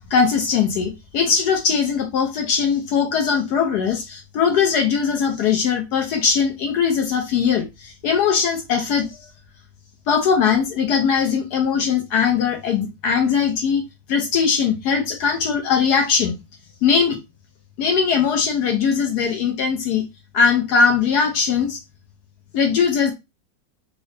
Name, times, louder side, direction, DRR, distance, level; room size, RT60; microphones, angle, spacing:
voice 1, 0.1-9.2 10.1-13.8 14.1-16.3 16.8-17.2 17.8-20.0 20.3-21.8 22.5-23.1, left 6 dB, 70° left, 1.1 m, -20 dB
3.7 x 2.0 x 3.2 m
omnidirectional pair, 1.9 m